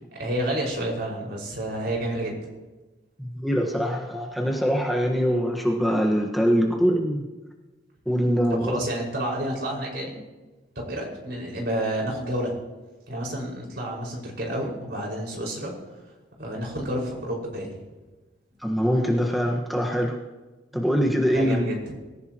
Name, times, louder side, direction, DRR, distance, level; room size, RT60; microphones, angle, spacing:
voice 1, 0.1-2.4 8.5-10.1 10.8-12.5 13.1-15.7 16.4-17.8 21.3-21.8, right 1 dB, 60° right, -1 dB, 5.7 m, -30 dB
voice 2, 3.2-7.2 8.0-8.8 18.6-20.1 20.7-21.7, equal, ahead, 0 dB, 1.5 m, -23 dB
24.5 x 15.5 x 3.1 m, 1.2 s
head